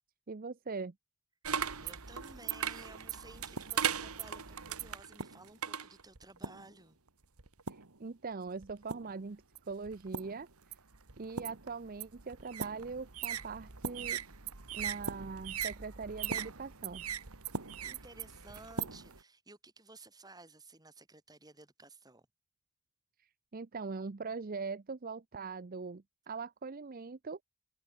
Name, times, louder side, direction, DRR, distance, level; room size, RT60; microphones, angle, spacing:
voice 1, 0.3-0.9 7.7-10.5 11.2-14.2 14.7-17.1 23.2-27.4, right 4 dB, 40° right, 0.6 m, -42 dB
sound 1, 1.4-6.7 7.4-8.0 8.6-9.2 9.6-19.2, right 7 dB, 90° right, 2.1 m, -39 dB
voice 2, 1.8-7.0 17.8-22.3, right 2 dB, 20° right, 6.0 m, -55 dB
open air
head